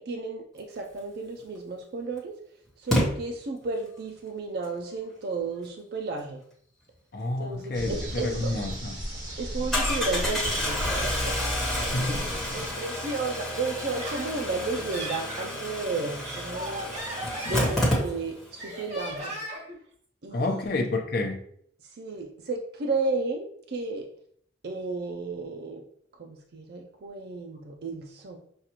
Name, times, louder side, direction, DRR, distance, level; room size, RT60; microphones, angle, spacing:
voice 1, 0.0-2.3 2.8-6.4 7.4-7.8 8.2-8.5 9.4-11.5 12.1-19.4 20.2-20.6 21.8-24.1 24.6-25.8 26.2-28.4, right 3 dB, 55° right, 2 dB, 0.4 m, -33 dB
Engine starting, 1.4-1.5 2.9-3.0 8.1-8.2 8.6-8.7 9.7-18.5 18.8-18.9 19.1-19.2, equal, ahead, 1.3 m, -29 dB
voice 2, 7.1-9.0 11.9-12.3 12.5-12.7 20.3-21.4, left 2 dB, 50° left, 3 dB, 0.7 m, -29 dB
sound 1, 7.7-12.7, equal, 70° right, 1.4 m, -34 dB
Laughter, 13.8-15.5 16.0-18.2 18.6-19.7, right 1 dB, 40° right, 1.1 m, -38 dB
6.3 x 2.4 x 2.9 m, 0.65 s
head